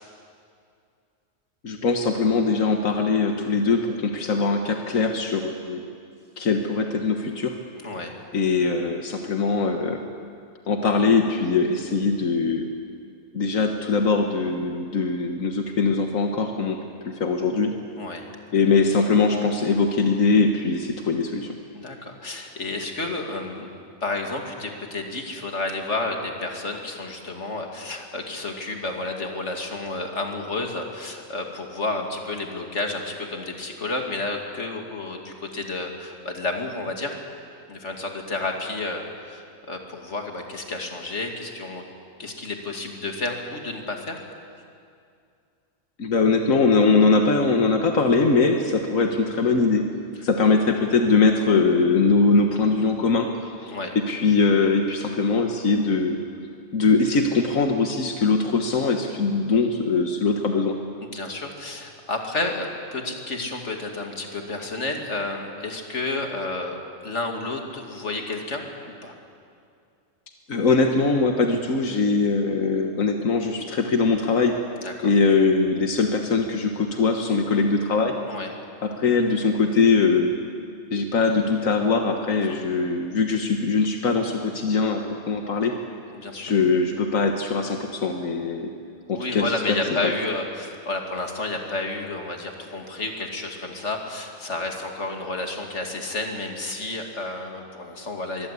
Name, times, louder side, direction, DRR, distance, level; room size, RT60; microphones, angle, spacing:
voice 1, 1.6-5.8 6.4-7.5 8.3-10.0 10.7-12.7 13.3-17.7 18.5-21.5 46.0-49.9 50.2-53.3 53.6-56.2 56.7-60.8 70.5-74.6 75.0-78.1 78.8-80.4 80.9-85.7 86.4-88.7 89.1-90.1, left 4 dB, 90° left, 4 dB, 1.8 m, -21 dB
voice 2, 7.8-8.2 18.0-18.3 21.7-23.7 24.0-37.1 37.7-41.8 42.2-44.2 53.7-53.9 61.0-66.8 67.0-69.1 74.8-75.1 78.3-78.5 82.3-82.6 86.1-86.5 89.1-98.5, left 2 dB, 60° left, 2 dB, 2.9 m, -31 dB
24.5 x 22.0 x 8.4 m, 2.4 s
omnidirectional pair, 1.4 m